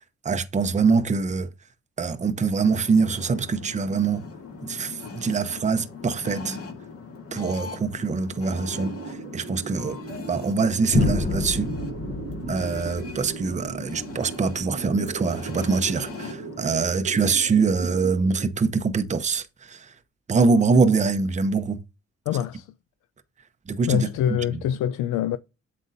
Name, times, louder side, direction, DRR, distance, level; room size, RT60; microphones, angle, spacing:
voice 1, 0.2-1.5 2.0-4.3 4.6-6.6 7.3-10.0 10.3-11.7 12.5-19.9 20.3-21.8 23.7-24.1, right 4 dB, 25° right, 0.7 m, -24 dB
sound 1, 2.6-16.7, left 4 dB, 50° left, 2.0 m, -40 dB
sound 2, 8.5-18.5, right 8 dB, 85° right, 1.2 m, -38 dB
sound 3, 10.9-14.9, left 4 dB, 35° left, 1.0 m, -29 dB
voice 2, 22.3-22.7 23.9-25.4, left 10 dB, 85° left, 0.5 m, -25 dB
8.2 x 5.3 x 2.6 m
cardioid pair, 90°, 30 cm